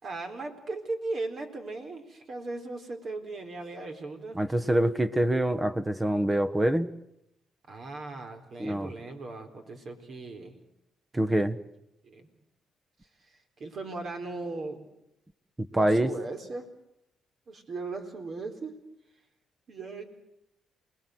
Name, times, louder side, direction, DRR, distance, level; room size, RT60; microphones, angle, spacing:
voice 1, 0.0-4.4 7.7-10.6 11.2-11.5 12.0-12.3 13.6-14.8 15.7-16.7 17.5-18.7 19.7-20.0, right 3 dB, 50° right, 6 dB, 4.1 m, -38 dB
voice 2, 4.3-6.9 8.6-8.9 11.1-11.6 15.6-16.1, right 1 dB, 15° right, 10 dB, 1.2 m, -25 dB
28.0 x 20.0 x 8.0 m, 0.82 s
cardioid pair, 90°, 0 cm